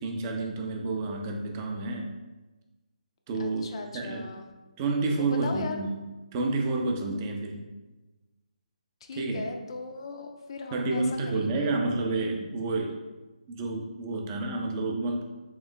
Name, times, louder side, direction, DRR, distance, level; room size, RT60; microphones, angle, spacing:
voice 1, 0.0-2.1 3.3-4.3 4.8-6.0 6.3-7.6 9.1-9.5 10.7-13.0 13.5-15.2, right 3 dB, 20° right, 1 dB, 0.4 m, -29 dB
voice 2, 3.4-4.5 5.2-5.9 9.0-11.7, left 3 dB, 40° left, 4 dB, 0.5 m, -38 dB
3.1 x 3.1 x 3.8 m, 1.2 s
figure-of-eight pair, 155°, 4 cm